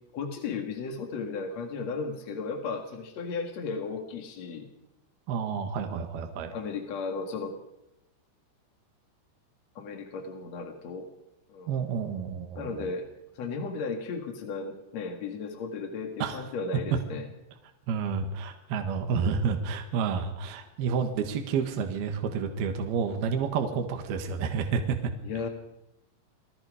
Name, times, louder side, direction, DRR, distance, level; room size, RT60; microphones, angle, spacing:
voice 1, 0.1-4.7 6.5-7.6 9.7-11.1 11.5-11.7 12.6-13.1 13.3-17.3 25.2-25.5, left 4 dB, 55° left, 4 dB, 2.0 m, -35 dB
voice 2, 5.3-6.5 11.7-12.9 16.2-16.4 17.9-25.1, right 6 dB, 60° right, 5 dB, 3.0 m, -30 dB
28.5 x 19.0 x 5.0 m, 0.87 s
omnidirectional pair, 5.8 m